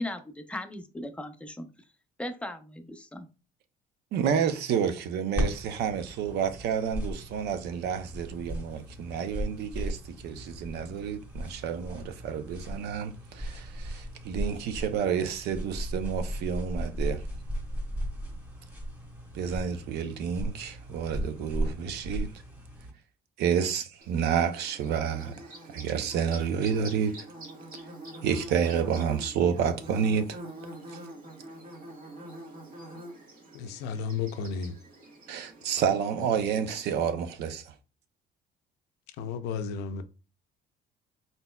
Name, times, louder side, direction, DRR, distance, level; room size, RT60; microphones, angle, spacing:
voice 1, 0.0-1.7 2.2-3.3, left 1 dB, 5° left, 0.6 m, -37 dB
voice 2, 4.1-17.2 19.3-22.3 23.4-25.4 25.7-27.1 28.2-30.4 35.3-37.7, right 7 dB, 75° right, 0.6 m, -29 dB
sound 1, 5.3-22.9, equal, 10° right, 1.3 m, -36 dB
Bird / Buzz, 24.0-36.9, right 1 dB, 55° right, 1.7 m, -46 dB
voice 3, 33.5-34.8 35.8-35.9 36.2-36.3 39.2-40.1, left 6 dB, 85° left, 0.5 m, -33 dB
4.2 x 4.0 x 2.2 m
cardioid pair, 110°, 17 cm